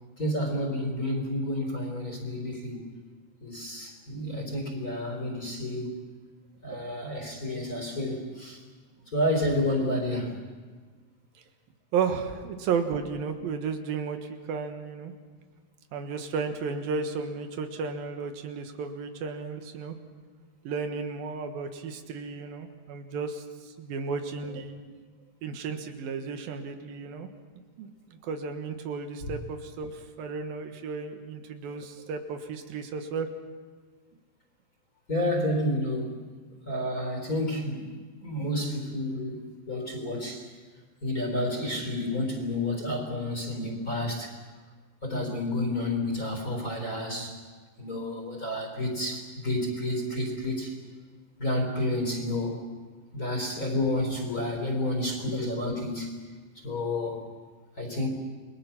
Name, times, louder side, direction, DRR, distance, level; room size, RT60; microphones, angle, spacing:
voice 1, 0.2-2.9 3.4-6.0 6.6-8.6 9.1-10.4 35.1-36.2 36.6-37.9 38.2-40.5 41.0-44.3 45.0-47.4 47.8-50.7 51.4-52.6 53.1-56.1 56.6-57.2 57.8-58.1, left 1 dB, 25° left, 2 dB, 4.3 m, -30 dB
voice 2, 11.9-14.2 14.5-15.1 15.9-20.0 20.6-24.7 25.4-27.3 27.8-33.3 55.2-55.4, right 5 dB, 85° right, 6 dB, 3.3 m, -33 dB
29.5 x 22.0 x 5.9 m, 1.5 s
omnidirectional pair, 4.1 m